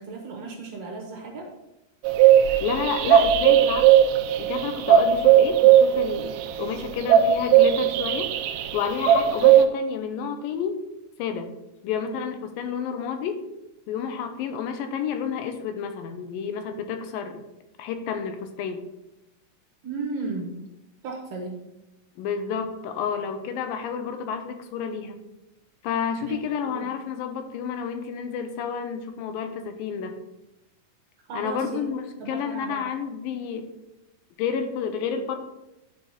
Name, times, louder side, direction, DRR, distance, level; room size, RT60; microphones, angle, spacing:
voice 1, 0.0-1.5 19.8-20.5 21.0-21.6 26.2-26.4 26.6-26.9 31.3-31.9 32.2-32.8, right 4 dB, 60° right, 0 dB, 1.8 m, -34 dB
sound 1, 2.0-9.6, right 10 dB, 80° right, 2.0 m, -18 dB
voice 2, 2.6-3.9 4.4-8.3 8.7-10.8 11.2-11.5 11.8-13.4 13.9-17.4 17.8-18.8 22.2-25.2 25.8-30.2 31.3-33.7 34.4-35.4, left 7 dB, 85° left, 7 dB, 2.5 m, -30 dB
10.0 x 4.9 x 4.1 m, 0.93 s
omnidirectional pair, 4.1 m